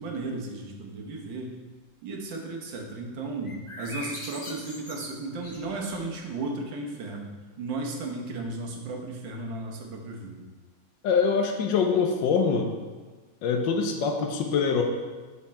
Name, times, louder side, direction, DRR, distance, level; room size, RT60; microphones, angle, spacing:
voice 1, 0.0-1.6 2.0-10.5, right 2 dB, 80° right, 1 dB, 1.7 m, -35 dB
sound 1, 3.4-6.1, left 1 dB, 30° left, 0.6 m, -41 dB
voice 2, 11.0-12.7 13.4-14.8, left 5 dB, 85° left, 3 dB, 1.5 m, -24 dB
7.4 x 4.8 x 4.3 m, 1.3 s
omnidirectional pair, 2.0 m